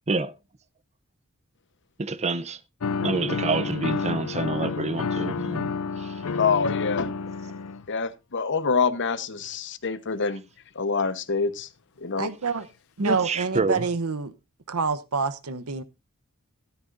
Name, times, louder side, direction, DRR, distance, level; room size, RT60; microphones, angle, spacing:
voice 1, 2.0-2.6 3.0-5.6 6.0-6.2 13.0-13.9, right 3 dB, 30° right, 0.6 m, -27 dB
sound 1, 2.8-7.9, left 4 dB, 70° left, 0.6 m, -29 dB
voice 2, 5.4-5.8 12.2-12.7 13.0-14.3 14.7-15.8, right 4 dB, 80° right, 0.9 m, -27 dB
voice 3, 6.4-7.1 7.9-10.4 10.7-11.7 12.0-12.3, left 5 dB, 55° left, 1.0 m, -26 dB
14.0 x 12.5 x 2.6 m
head